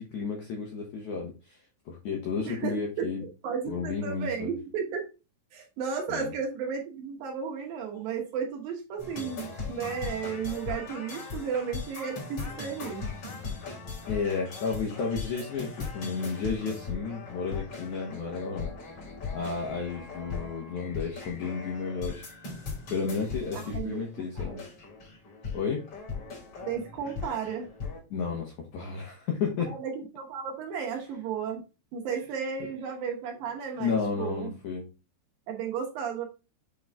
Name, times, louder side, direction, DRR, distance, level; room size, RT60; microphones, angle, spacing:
voice 1, 0.0-1.6 1.9-3.2 3.7-4.6 6.1-6.3 14.1-18.7 19.3-22.3 22.9-24.6 25.5-25.9 28.1-29.7 33.8-34.9, left 5 dB, 75° left, 0 dB, 1.8 m, -32 dB
voice 2, 2.5-3.1 3.4-5.0 5.5-13.0 23.5-24.6 26.6-27.7 29.7-31.6 31.9-34.5 35.5-36.3, right 6 dB, 70° right, 2 dB, 2.6 m, -34 dB
sound 1, 9.0-28.0, left 4 dB, 35° left, 3.4 m, -39 dB
7.4 x 3.9 x 3.5 m, 0.29 s
omnidirectional pair, 4.8 m